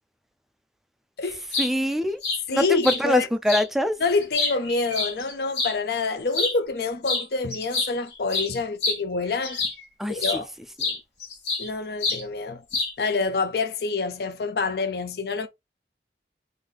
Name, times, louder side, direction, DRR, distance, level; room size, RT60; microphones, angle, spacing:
sound 1, 1.3-1.7 2.2-2.4 2.8-3.0 3.5-3.7 4.1-5.7 6.3-6.6 7.0-7.3 7.5-9.8 10.2-10.4 10.8-11.7 12.0-12.2 12.7-13.1, left 3 dB, 85° left, 1.8 m, -27 dB
voice 1, 1.6-2.2 2.5-4.0 10.0-10.4, equal, ahead, 0.3 m, -24 dB
voice 2, 2.5-3.3 4.0-9.6 10.1-10.5 11.6-12.6 13.0-15.5, left 4 dB, 65° left, 0.5 m, -27 dB
3.8 x 2.7 x 3.3 m
head